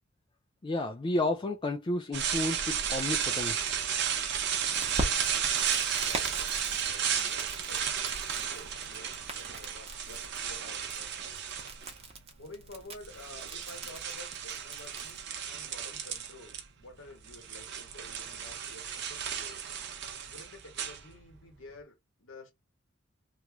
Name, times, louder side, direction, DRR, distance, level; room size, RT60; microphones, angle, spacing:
voice 1, 0.6-3.8, left 2 dB, 25° left, 0.3 m, -32 dB
sound 1, 2.1-12.0 12.8-16.6 16.9-21.5, right 8 dB, 60° right, 0.7 m, -33 dB
Crackle, 4.7-15.2, right 2 dB, 30° right, 0.9 m, -42 dB
voice 2, 5.9-11.4 12.4-19.6 20.3-22.5, left 2 dB, 85° left, 1.4 m, -51 dB
3.0 x 2.4 x 2.9 m
head